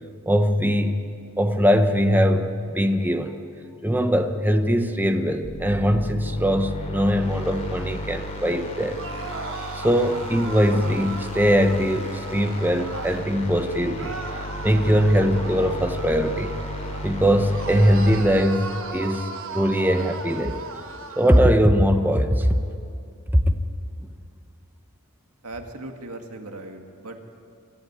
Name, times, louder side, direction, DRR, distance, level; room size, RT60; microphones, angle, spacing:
voice 1, 0.3-1.0 1.4-3.4 3.8-9.0 9.7-14.2 14.6-16.5 17.0-19.3 19.5-20.6 21.2-22.6 23.5-23.6, equal, 10° right, 7 dB, 1.0 m, -21 dB
sound 1, 5.4-18.2, equal, 30° left, 3.6 m, -34 dB
sound 2, 8.9-13.2 14.0-17.1 17.5-21.4, right 4 dB, 60° right, 1.4 m, -37 dB
voice 2, 25.4-27.2, right 2 dB, 80° right, 4 dB, 1.9 m, -38 dB
24.5 x 13.0 x 9.6 m, 2.5 s
head